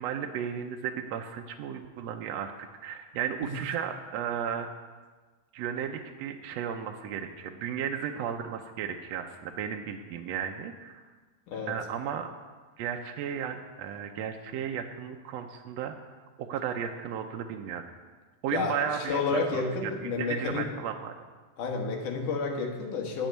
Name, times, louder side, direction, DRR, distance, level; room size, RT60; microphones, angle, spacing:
voice 1, 0.0-4.7 5.5-11.0 11.7-12.3 12.8-15.9 16.4-17.8 18.4-19.9 20.2-21.1, right 8 dB, 75° right, 4 dB, 1.6 m, -34 dB
voice 2, 11.5-11.8 18.5-18.8 19.1-20.7 21.6-23.3, left 4 dB, 85° left, 2 dB, 3.0 m, -30 dB
9.8 x 7.2 x 9.1 m, 1.4 s
omnidirectional pair, 3.5 m